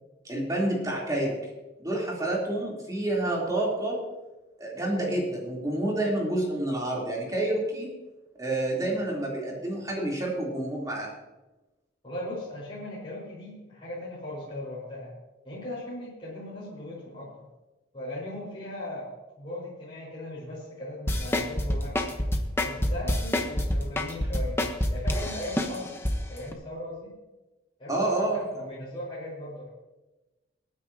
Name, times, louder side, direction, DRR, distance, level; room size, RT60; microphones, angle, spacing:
voice 1, 0.2-1.4 1.8-4.0 4.6-7.9 8.4-11.1 27.9-28.7, right 1 dB, 20° right, -3 dB, 3.6 m, -28 dB
voice 2, 12.0-15.1 15.4-17.3 17.9-19.1 19.4-22.0 22.6-24.6 24.9-25.9 26.3-27.1 27.8-29.7, left 1 dB, 30° left, -8 dB, 5.1 m, -38 dB
sound 1, 21.1-26.1 26.5-26.6, left 1 dB, 15° left, 1.1 m, -26 dB
27.0 x 9.8 x 2.9 m, 1.1 s
head